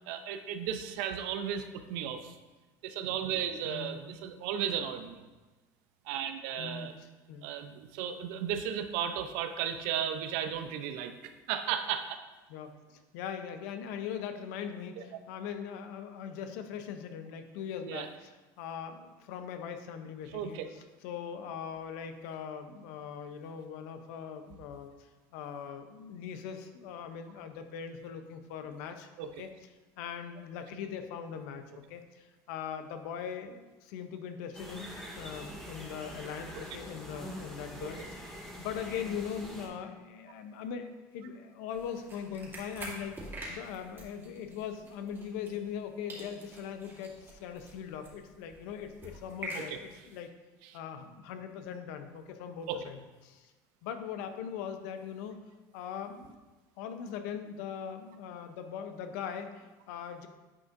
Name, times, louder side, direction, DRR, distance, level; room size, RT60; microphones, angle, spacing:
voice 1, 0.1-2.3 2.8-5.2 6.1-6.9 7.4-12.2 17.8-18.1 20.3-20.7 29.2-29.3 49.5-49.8 52.7-52.8, right 9 dB, 75° right, 8 dB, 0.5 m, -35 dB
voice 2, 2.9-3.4 3.6-4.0 6.6-7.5 12.5-24.9 25.3-29.7 30.0-34.9 35.1-43.2 43.5-50.3 50.7-53.5 53.8-55.4 55.7-56.4 56.8-60.3, left 7 dB, 80° left, 8 dB, 0.6 m, -41 dB
sound 1, 34.5-39.7, equal, 5° left, 1.9 m, -45 dB
sound 2, 41.7-45.8 46.1-50.2, right 1 dB, 25° right, 2.2 m, -46 dB
9.5 x 5.1 x 2.5 m, 1.2 s
supercardioid pair, 90°, 9 cm